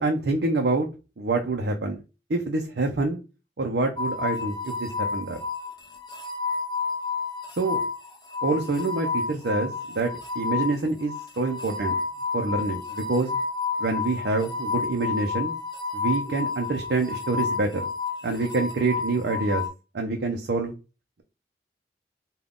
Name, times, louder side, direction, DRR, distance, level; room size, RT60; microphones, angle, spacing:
voice 1, 0.0-0.9 1.2-2.0 2.3-3.2 3.6-5.4 7.6-7.8 8.4-12.0 12.3-13.4 13.8-15.5 15.9-17.8 18.2-19.6 19.9-20.7, right 3 dB, 65° right, 3 dB, 0.5 m, -26 dB
sound 1, 4.0-19.7, left 5 dB, 25° left, 0.6 m, -30 dB
3.6 x 2.3 x 3.5 m, 0.30 s
head